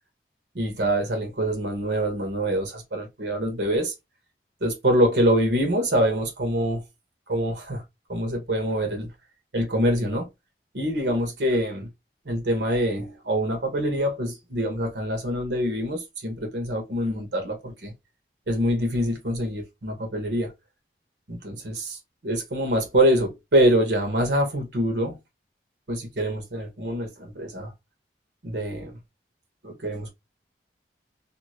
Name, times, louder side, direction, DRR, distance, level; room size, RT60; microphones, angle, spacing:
voice 1, 0.5-3.9 4.6-6.8 7.3-7.8 8.1-9.1 9.5-10.3 10.7-11.9 12.2-17.9 18.5-20.5 21.3-25.2 25.9-27.7 28.4-29.0 29.6-30.1, equal, 75° right, 1.1 m, -25 dB
2.9 x 2.4 x 2.9 m
head